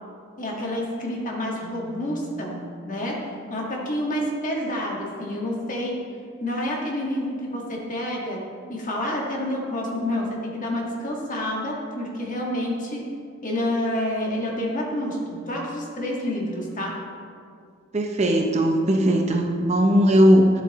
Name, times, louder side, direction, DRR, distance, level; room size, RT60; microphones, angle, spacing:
voice 1, 0.4-2.6 2.8-3.1 3.5-5.9 6.4-8.4 8.7-13.0 13.4-16.9, left 1 dB, 40° left, -2 dB, 1.6 m, -28 dB
voice 2, 17.9-20.5, equal, 30° right, 3 dB, 0.6 m, -18 dB
11.5 x 7.5 x 3.0 m, 2.3 s
head